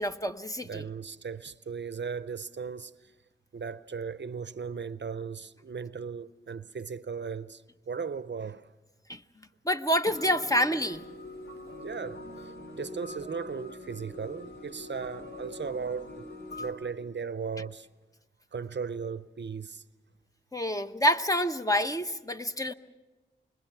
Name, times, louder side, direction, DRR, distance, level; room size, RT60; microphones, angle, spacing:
voice 1, 0.0-0.9 9.1-9.2 9.6-11.0 20.5-22.7, equal, 15° left, 0.9 m, -27 dB
voice 2, 0.6-2.9 3.5-7.6 7.9-8.7 11.8-16.3 16.6-17.9 18.5-19.8, right 5 dB, 65° right, 0.6 m, -37 dB
sound 1, 10.0-16.7, left 1 dB, 80° left, 3.3 m, -43 dB
25.5 x 21.5 x 6.0 m
cardioid pair, 40°, 20 cm